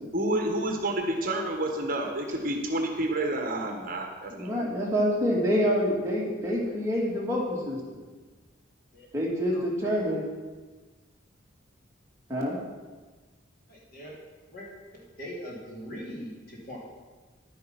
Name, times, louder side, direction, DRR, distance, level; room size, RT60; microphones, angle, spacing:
voice 1, 0.1-4.7, right 1 dB, 45° right, 3 dB, 1.3 m, -29 dB
voice 2, 4.3-8.0 9.1-10.2 12.3-12.6, equal, 15° right, -4 dB, 2.3 m, -27 dB
voice 3, 13.7-14.1 14.5-14.7 14.9-16.8, equal, 50° left, -4 dB, 3.4 m, -41 dB
11.0 x 9.4 x 5.9 m, 1.3 s
head